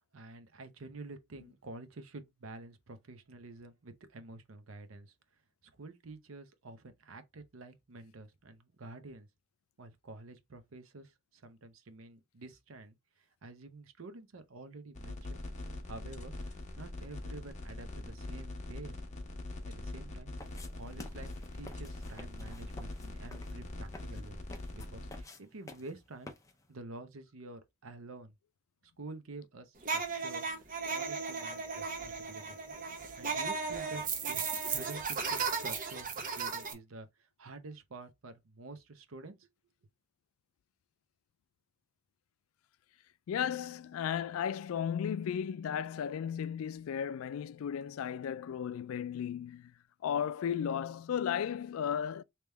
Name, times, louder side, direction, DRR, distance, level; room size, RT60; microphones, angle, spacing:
voice 1, 0.1-5.1 5.8-9.3 9.8-13.0 13.4-15.4 15.8-19.0 19.6-20.3 20.7-24.4 24.7-26.3 26.7-28.3 29.0-30.5 30.9-32.6 33.2-39.5, right 3 dB, 75° right, 0.7 m, -49 dB
sound 1, 14.9-25.2, left 2 dB, 35° left, 0.9 m, -43 dB
sound 2, 20.4-26.7, left 2 dB, 15° left, 0.6 m, -52 dB
sound 3, 29.8-36.7, right 5 dB, 40° right, 0.8 m, -35 dB
voice 2, 43.3-49.7 50.0-52.2, left 8 dB, 80° left, 0.3 m, -35 dB
3.4 x 2.9 x 3.3 m
head